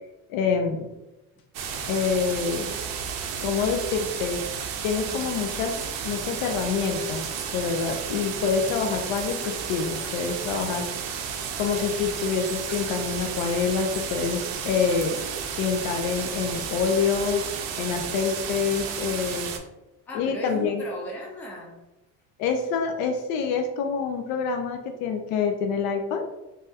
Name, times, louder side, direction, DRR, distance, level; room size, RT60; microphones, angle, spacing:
voice 1, 0.3-0.9 1.9-2.7 3.4-4.4 4.8-7.3 7.5-10.9 11.6-15.2 15.6-17.4 17.8-19.5 20.1-20.8 22.4-26.2, left 6 dB, 80° left, 5 dB, 0.5 m, -26 dB
sound 1, 1.5-19.6, right 7 dB, 55° right, 0.5 m, -32 dB
voice 2, 10.5-10.9 20.1-21.8, equal, 5° left, -1 dB, 0.4 m, -38 dB
3.3 x 2.3 x 2.7 m, 0.99 s
cardioid pair, 145°, 33 cm